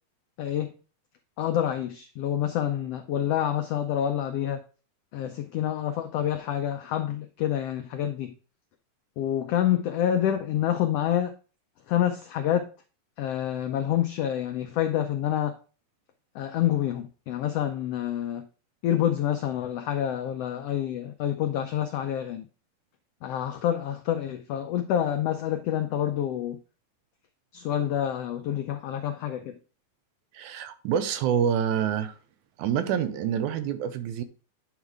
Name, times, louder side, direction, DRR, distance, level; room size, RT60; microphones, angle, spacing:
voice 1, 0.4-0.7 1.4-4.6 5.1-8.4 9.2-11.3 11.9-12.7 13.2-15.6 16.3-18.4 18.8-22.5 23.2-26.6 27.5-29.6, left 10 dB, 90° left, 1.3 m, -27 dB
voice 2, 30.3-32.2 32.6-34.2, right 8 dB, 85° right, 2.2 m, -27 dB
9.1 x 3.7 x 4.7 m
omnidirectional pair, 3.4 m